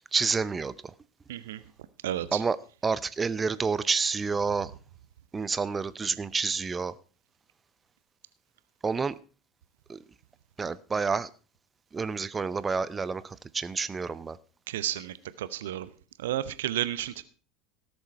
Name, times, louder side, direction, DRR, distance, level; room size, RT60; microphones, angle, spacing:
voice 1, 0.1-0.7 2.3-2.6 2.8-4.7 5.3-6.9 8.8-9.2 9.9-10.0 10.6-11.3 11.9-14.4, right 5 dB, 20° right, 17 dB, 0.6 m, -29 dB
voice 2, 1.3-1.6 2.0-2.4 14.7-15.9 16.2-17.2, right 12 dB, 65° right, 15 dB, 0.7 m, -32 dB
17.5 x 7.1 x 4.6 m, 0.38 s
figure-of-eight pair, 75°, 0 cm